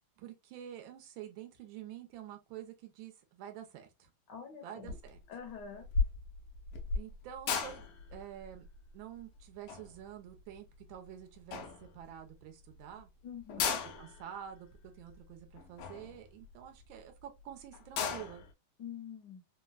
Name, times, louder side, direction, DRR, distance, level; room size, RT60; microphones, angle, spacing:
voice 1, 0.2-4.1 4.6-5.2 6.9-8.6 8.9-13.1 14.0-14.7 15.0-18.4, right 10 dB, 75° right, 1.4 m, -48 dB
voice 2, 4.3-4.9 5.3-5.9 13.2-13.8 18.8-19.4, left 7 dB, 65° left, 1.2 m, -46 dB
sound 1, 4.9-5.2 5.5-11.1 11.5-12.3 12.7-12.8 13.0-13.1 13.4-17.0 17.4-17.5 17.7-18.5, left 5 dB, 85° left, 1.5 m, -37 dB
3.9 x 2.1 x 2.2 m
omnidirectional pair, 2.3 m